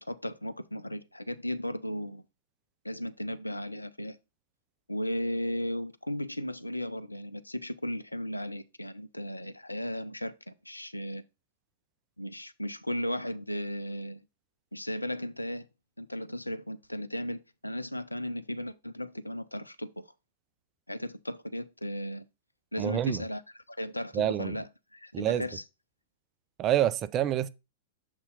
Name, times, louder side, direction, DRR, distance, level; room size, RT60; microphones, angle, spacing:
voice 1, 0.0-2.2 2.8-4.2 4.9-11.2 12.2-14.2 14.7-15.7 16.0-20.0 20.9-22.3 22.7-23.4 23.7-25.6, equal, 85° left, 0.4 m, -35 dB
voice 2, 22.8-23.2 24.1-24.6 25.1-25.5 26.6-27.5, right 11 dB, 30° right, 0.3 m, -27 dB
7.0 x 2.8 x 5.3 m
figure-of-eight pair, 100°, 0 cm